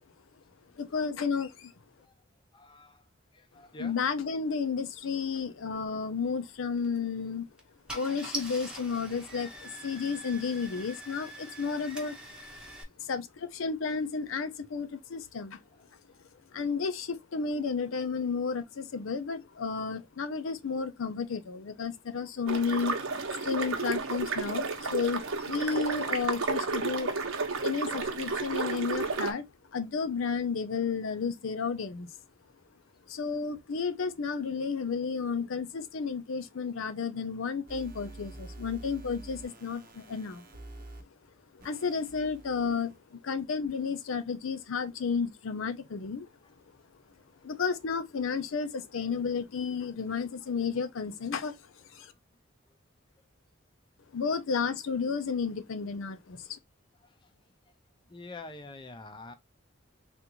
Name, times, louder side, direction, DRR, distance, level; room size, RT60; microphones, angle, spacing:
voice 1, 0.8-1.7 3.8-7.5 7.9-12.2 13.0-15.6 16.5-23.0 23.4-27.1 27.6-29.4 29.7-32.1 33.1-40.5 41.5-46.3 47.4-52.1 54.1-56.6, left 5 dB, 75° left, 0.5 m, -32 dB
voice 2, 2.5-3.0 3.3-4.0 5.3-5.5 9.4-10.2 23.0-23.3 25.4-25.5 46.4-46.5 57.0-57.3 58.1-59.3, left 2 dB, 25° left, 0.5 m, -48 dB
Car / Engine starting, 6.8-7.0 7.6-7.7 7.9-12.8, right 1 dB, 5° right, 0.9 m, -43 dB
sound 1, 22.5-29.3, right 4 dB, 80° right, 0.9 m, -32 dB
sound 2, 37.7-41.0 41.6-42.9, right 2 dB, 45° right, 0.7 m, -47 dB
3.6 x 2.5 x 2.8 m
head